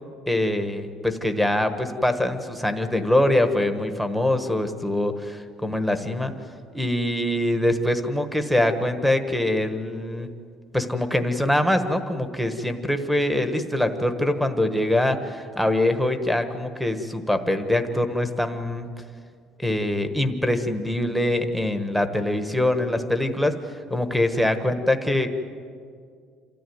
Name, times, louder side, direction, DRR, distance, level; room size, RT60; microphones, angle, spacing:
voice 1, 0.3-6.3 6.7-10.3 10.7-18.9 19.6-23.6 23.9-25.3, left 1 dB, ahead, 6 dB, 1.3 m, -23 dB
28.0 x 14.0 x 9.5 m, 2.2 s
cardioid pair, 155°, 0 cm